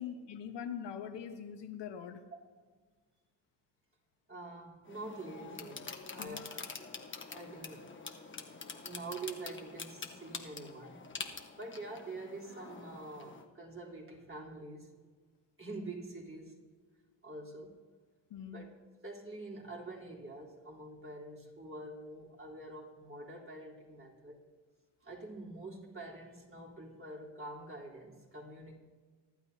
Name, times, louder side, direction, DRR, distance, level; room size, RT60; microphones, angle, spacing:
voice 1, 0.0-2.2 6.2-6.4 18.3-18.6, left 8 dB, 80° left, 7 dB, 1.3 m, -42 dB
voice 2, 4.3-6.9 7.3-7.9 8.8-11.3 11.6-14.9 15.6-16.6 17.2-17.8 18.4-18.7 19.0-24.4 25.0-28.8, right 2 dB, 30° right, -3 dB, 3.7 m, -46 dB
sound 1, 4.8-13.4, left 4 dB, 25° left, 1.3 m, -46 dB
24.0 x 12.0 x 2.8 m, 1.5 s
cardioid pair, 95°, 42 cm